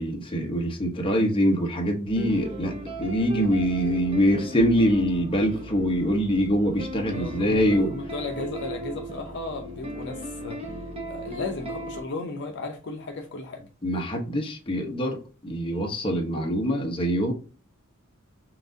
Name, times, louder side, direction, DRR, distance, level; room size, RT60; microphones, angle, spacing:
voice 1, 0.0-8.0 13.8-17.3, equal, 25° left, 0.9 m, -24 dB
sound 1, 2.1-12.0, right 1 dB, 25° right, 0.8 m, -36 dB
voice 2, 7.1-10.6 11.0-13.7, left 3 dB, 55° left, 0.6 m, -35 dB
5.8 x 2.5 x 2.7 m
head